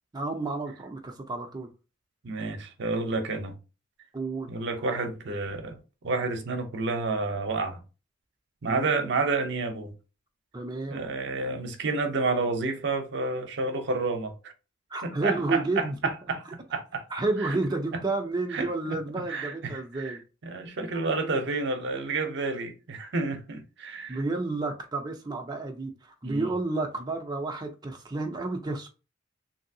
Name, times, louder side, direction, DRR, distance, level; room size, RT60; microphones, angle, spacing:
voice 1, 0.1-1.7 4.1-4.5 8.6-9.0 10.5-11.1 14.9-16.0 17.1-20.2 24.1-28.9, right 2 dB, 20° right, 0.4 m, -31 dB
voice 2, 2.2-3.6 4.5-7.8 8.6-9.9 10.9-14.5 15.0-17.1 17.4-17.6 17.9-18.0 18.5-19.0 19.3-24.2 26.2-26.5, right 3 dB, 65° right, 0.6 m, -30 dB
3.2 x 2.6 x 2.6 m
head